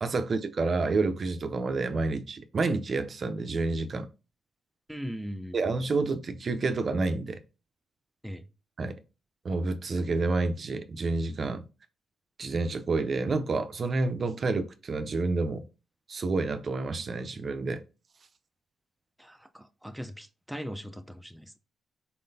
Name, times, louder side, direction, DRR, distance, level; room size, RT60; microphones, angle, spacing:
voice 1, 0.0-4.1 5.5-7.4 8.8-9.0 9.4-11.6 12.4-15.7 16.1-17.8, right 3 dB, 50° right, 0.5 m, -29 dB
voice 2, 4.9-5.6 8.2-8.4 19.2-21.6, equal, ahead, 0.5 m, -39 dB
4.1 x 3.7 x 2.7 m
cardioid pair, 75°, 0 cm